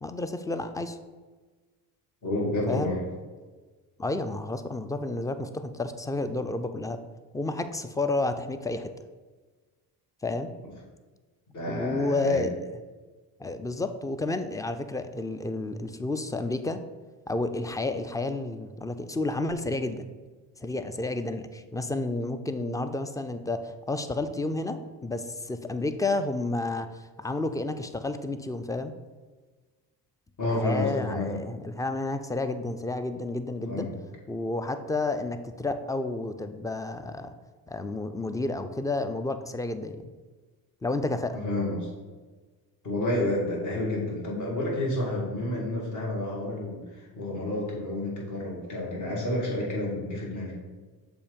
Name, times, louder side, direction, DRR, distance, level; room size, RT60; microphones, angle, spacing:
voice 1, 0.0-1.0 2.7-2.9 4.0-7.0 7.3-8.9 10.2-10.5 11.7-12.5 13.4-16.8 17.3-20.1 20.6-28.9 30.4-33.9 34.3-37.3 37.7-40.1 40.8-41.4, left 2 dB, 10° left, 10 dB, 0.4 m, -31 dB
voice 2, 2.2-3.0 10.6-10.7 11.5-12.5 30.4-31.4 33.7-34.0 41.3-41.9 42.8-50.5, left 1 dB, 45° left, -3 dB, 1.9 m, -30 dB
6.9 x 2.7 x 5.1 m, 1.3 s
cardioid pair, 75°, 40 cm